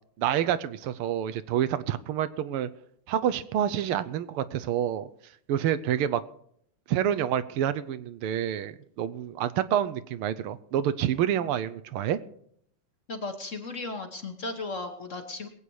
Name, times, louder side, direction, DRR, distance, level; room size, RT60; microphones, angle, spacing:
voice 1, 0.2-2.7 3.1-5.1 5.5-6.2 6.9-12.2, right 10 dB, 80° right, 13 dB, 1.6 m, -28 dB
voice 2, 13.1-15.5, left 3 dB, 40° left, 5 dB, 1.4 m, -35 dB
21.5 x 8.5 x 4.7 m, 0.67 s
omnidirectional pair, 2.4 m